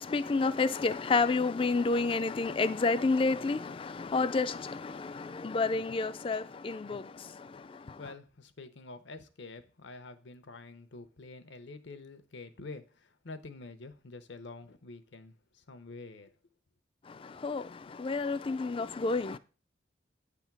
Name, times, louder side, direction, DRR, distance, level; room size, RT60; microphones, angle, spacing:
voice 1, 0.0-8.0 17.1-19.4, left 3 dB, 30° left, 0.3 m, -30 dB
voice 2, 8.0-16.3, left 3 dB, 70° left, 0.7 m, -47 dB
8.6 x 3.6 x 5.8 m
head